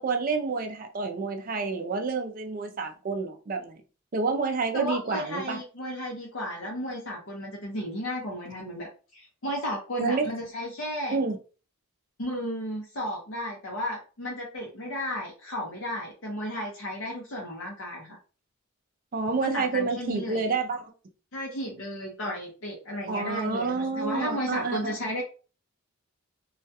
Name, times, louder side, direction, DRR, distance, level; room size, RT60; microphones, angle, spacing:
voice 1, 0.0-3.8 4.1-5.6 10.0-10.3 11.1-11.4 19.1-20.9 23.1-25.0, right 4 dB, 40° right, 0.4 m, -29 dB
voice 2, 4.7-8.9 9.1-11.2 12.2-18.2 19.4-20.5 21.3-25.2, equal, 60° left, 0.7 m, -34 dB
2.3 x 2.2 x 2.6 m
head